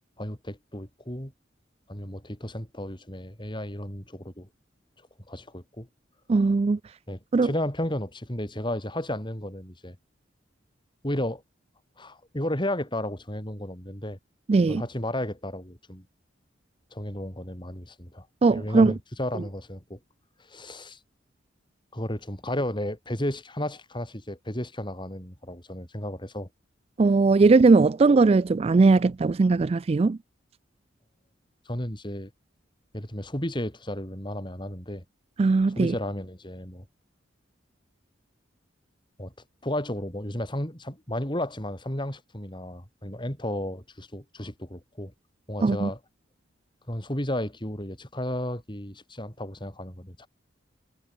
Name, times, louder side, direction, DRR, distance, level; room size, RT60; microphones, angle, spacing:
voice 1, 0.2-1.3 1.9-4.5 5.3-5.9 7.1-10.0 11.0-11.4 12.0-14.2 14.7-16.1 16.9-20.0 20.4-21.0 21.9-26.5 31.7-32.3 32.9-35.0 35.7-36.9 39.2-39.3 39.6-45.1 45.5-46.0 46.9-50.3, left 1 dB, 25° left, 5.9 m, -33 dB
voice 2, 6.3-6.8 7.3-7.5 14.5-14.8 18.4-18.9 27.0-30.2 35.4-35.9 45.6-45.9, right 3 dB, 30° right, 0.3 m, -19 dB
head